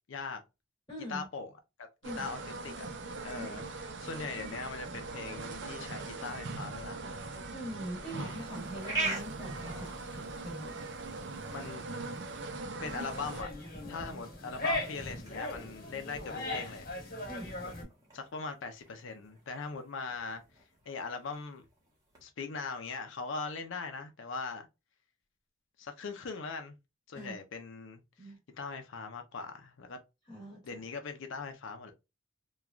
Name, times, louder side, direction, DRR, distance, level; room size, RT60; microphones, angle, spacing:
voice 1, 0.1-0.4 1.1-1.5 2.0-2.7 3.2-7.0 8.2-8.3 11.5-11.9 12.8-13.5 13.9-16.9 17.6-17.7 18.1-20.4 20.9-21.7 22.2-24.7 25.8-26.7 27.1-28.0 28.6-30.0 30.6-31.9, left 4 dB, 75° left, 0.5 m, -40 dB
voice 2, 0.9-1.3 2.0-2.3 7.5-10.8 17.3-17.6 27.1-27.4 28.2-28.4 30.3-30.8, equal, 20° left, 1.0 m, -43 dB
sound 1, 2.0-13.4, right 3 dB, 60° right, 0.5 m, -41 dB
sound 2, 8.1-22.2, right 2 dB, 15° right, 1.1 m, -44 dB
sound 3, 12.8-17.8, left 2 dB, 45° left, 1.0 m, -38 dB
3.0 x 2.3 x 2.3 m
head